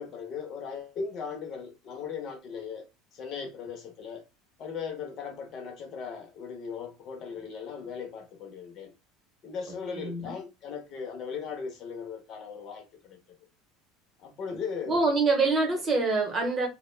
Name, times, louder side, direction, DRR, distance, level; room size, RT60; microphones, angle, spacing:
voice 1, 0.0-2.9 3.1-4.2 4.6-8.9 9.4-13.2 14.2-15.0, left 6 dB, 40° left, 0.6 m, -38 dB
voice 2, 9.9-10.3 14.9-16.7, right 3 dB, 25° right, 0.8 m, -25 dB
2.2 x 2.1 x 3.1 m
cardioid pair, 160°, 0 cm